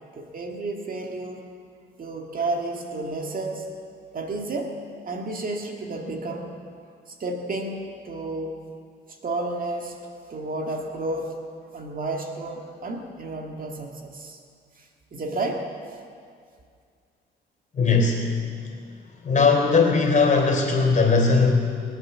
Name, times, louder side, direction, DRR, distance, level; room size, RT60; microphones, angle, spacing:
voice 1, 0.2-1.5 2.0-3.7 4.1-6.6 7.1-8.6 9.2-10.0 10.3-11.4 11.7-14.4 14.8-15.7, right 2 dB, 45° right, 2 dB, 1.8 m, -31 dB
voice 2, 17.7-18.4 19.2-21.5, left 4 dB, 40° left, 2 dB, 3.4 m, -19 dB
20.5 x 8.7 x 7.2 m, 2.2 s
cardioid pair, 90°, 20 cm